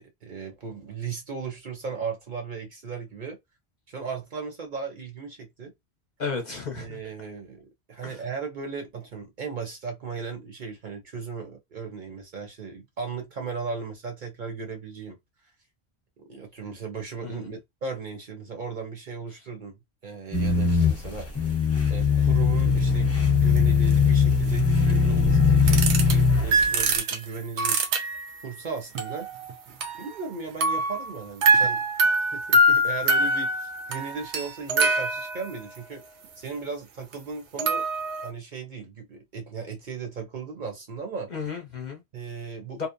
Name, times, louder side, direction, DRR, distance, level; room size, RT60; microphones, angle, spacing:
voice 1, 0.0-3.4 3.9-5.7 6.8-15.2 16.3-21.5 21.9-27.8 28.4-29.3 30.0-36.0 36.4-37.9 38.2-41.3 42.1-42.9, right 5 dB, 50° right, 0.9 m, -36 dB
voice 2, 6.2-7.0 8.0-8.1 17.2-17.5 41.3-42.0 42.8-42.9, left 5 dB, 50° left, 0.7 m, -33 dB
sound 1, 20.3-26.8, left 5 dB, 15° left, 0.7 m, -21 dB
sound 2, 23.6-23.7 23.9-24.0 25.7-26.2 26.5-28.4 28.9-30.4 30.6-35.8 37.1-37.2 37.6-38.3, right 1 dB, 90° right, 0.9 m, -24 dB
2.7 x 2.0 x 2.5 m
omnidirectional pair, 1.1 m